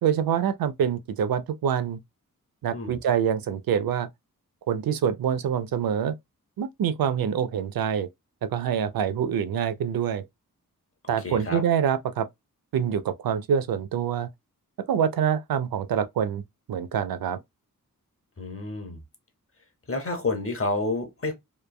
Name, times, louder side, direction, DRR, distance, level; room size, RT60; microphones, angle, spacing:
voice 1, 0.0-2.0 2.6-4.1 4.7-6.1 6.6-8.1 8.5-10.2 11.1-12.3 12.7-14.3 14.9-16.4 16.7-17.4, right 8 dB, 90° right, 0.5 m, -25 dB
voice 2, 11.0-11.6 18.4-19.0 19.9-21.3, left 3 dB, 40° left, 0.9 m, -29 dB
3.1 x 2.2 x 2.2 m
wide cardioid pair, 100°, 34 cm